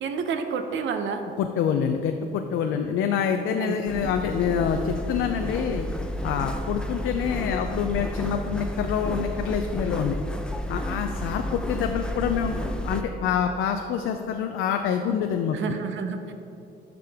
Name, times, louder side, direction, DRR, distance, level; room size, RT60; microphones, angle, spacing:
voice 1, 0.0-1.2 3.6-3.8 15.5-16.3, right 6 dB, 70° right, 7 dB, 0.8 m, -29 dB
voice 2, 1.4-5.9 6.2-10.2 10.7-12.5 12.8-15.8, left 7 dB, 85° left, 5 dB, 0.5 m, -26 dB
sound 1, 3.9-13.0, left 1 dB, 5° left, 0.6 m, -31 dB
12.5 x 5.1 x 3.5 m, 2.8 s
cardioid pair, 90°, 20 cm